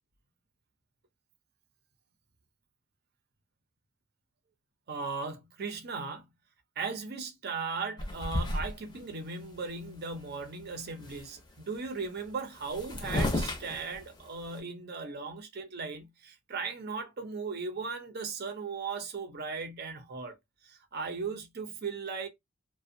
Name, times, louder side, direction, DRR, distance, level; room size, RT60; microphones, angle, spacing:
voice 1, 4.9-6.3 6.8-20.4 20.6-22.3, right 4 dB, 50° right, 0.6 m, -37 dB
sound 1, 8.0-9.1 9.6-9.7 9.9-10.4 10.7-11.4 12.3-12.4 12.5-14.6, left 1 dB, 20° left, 0.6 m, -33 dB
2.5 x 2.1 x 2.6 m
head